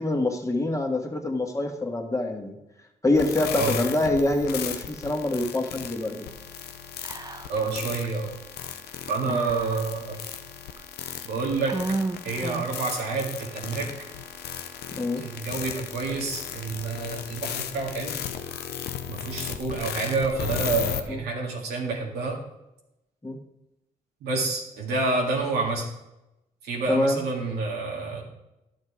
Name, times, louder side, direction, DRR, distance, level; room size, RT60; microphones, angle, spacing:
voice 1, 0.0-2.6 3.0-6.3 9.2-9.4 15.0-15.2 21.1-21.2 23.2-23.4 26.9-27.2, left 2 dB, 20° left, 2 dB, 1.8 m, -25 dB
sound 1, 3.1-21.0, left 9 dB, 85° left, 0.7 m, -35 dB
Whispering, 7.0-7.8 8.0-8.1 9.3-10.1 10.8-10.9 11.7-12.9, right 3 dB, 25° right, 0.9 m, -32 dB
voice 2, 7.5-8.3 9.1-10.2 11.2-11.8 12.2-13.9 15.2-18.2 19.1-22.4 24.2-25.9 26.6-28.2, right 3 dB, 90° right, -1 dB, 2.1 m, -28 dB
11.0 x 6.6 x 5.0 m, 0.93 s
supercardioid pair, 55°, 16 cm